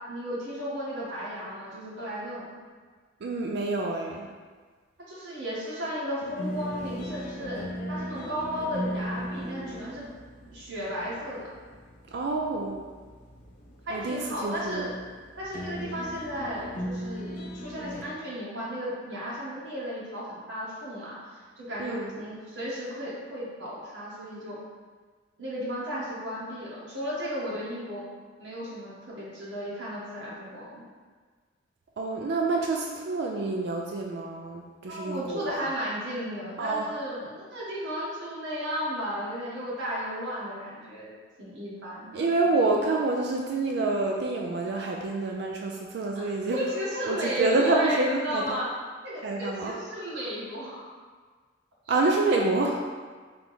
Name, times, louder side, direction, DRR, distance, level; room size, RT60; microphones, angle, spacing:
voice 1, 0.1-2.4 5.1-10.1 10.5-11.5 13.8-14.9 15.4-24.6 25.4-28.0 28.4-30.8 34.9-42.3 46.1-46.2 46.5-48.7 49.0-50.9 51.8-51.9, equal, 85° right, -7 dB, 1.2 m, -34 dB
voice 2, 3.2-4.3 12.1-12.8 13.9-14.9 21.8-22.1 32.0-35.6 36.6-36.9 42.1-46.6 47.1-48.6 49.2-49.8 51.9-52.9, right 3 dB, 60° right, 0 dB, 0.4 m, -27 dB
sound 1, 6.2-18.0, equal, 45° left, 0.5 m, -38 dB
3.5 x 2.9 x 4.1 m, 1.5 s
head